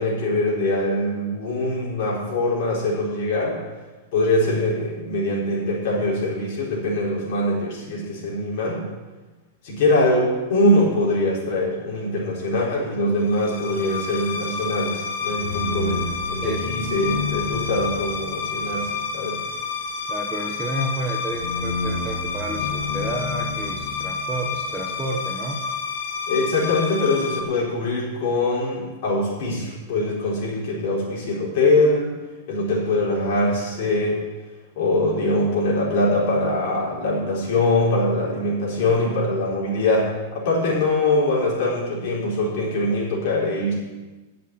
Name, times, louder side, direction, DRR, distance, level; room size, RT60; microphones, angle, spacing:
voice 1, 0.0-3.6 4.1-8.9 9.6-19.4 26.3-32.1 32.5-34.2 34.8-43.8, left 2 dB, 45° left, -5 dB, 4.6 m, -23 dB
sound 1, 13.2-27.4, left 5 dB, 85° left, 1.8 m, -28 dB
voice 2, 20.1-25.6, right 2 dB, 10° right, 1 dB, 0.9 m, -31 dB
9.3 x 7.6 x 9.2 m, 1.2 s
supercardioid pair, 175°, 0 cm